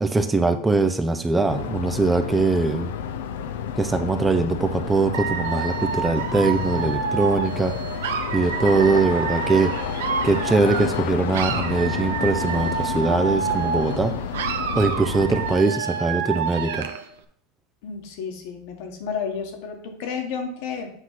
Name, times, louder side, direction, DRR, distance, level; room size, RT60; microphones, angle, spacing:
voice 1, 0.0-2.9 3.8-7.7 8.3-9.7 10.2-14.1 14.7-16.9, right 3 dB, 10° right, 8 dB, 0.5 m, -22 dB
sound 1, 1.5-15.6, left 7 dB, 85° left, 0.6 m, -30 dB
Dog / Alarm, 5.1-11.0 11.3-14.0 14.3-17.1, right 7 dB, 90° right, 0.7 m, -28 dB
voice 2, 17.8-20.9, left 6 dB, 65° left, 3 dB, 1.6 m, -31 dB
8.0 x 3.1 x 5.8 m, 0.64 s
supercardioid pair, 135°, 0 cm